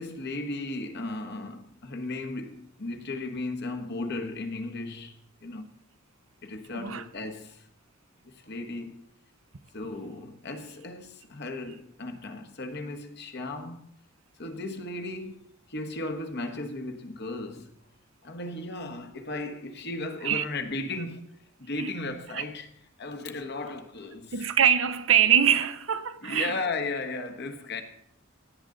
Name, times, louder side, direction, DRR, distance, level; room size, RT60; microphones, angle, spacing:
voice 1, 0.0-5.7 6.4-7.7 8.2-9.1 9.7-13.9 14.4-17.8 18.2-22.7 23.0-24.5 26.2-27.8, left 2 dB, 55° left, 1.3 m, -36 dB
voice 2, 24.3-26.5, right 9 dB, 70° right, 0.7 m, -23 dB
16.5 x 9.0 x 3.9 m
head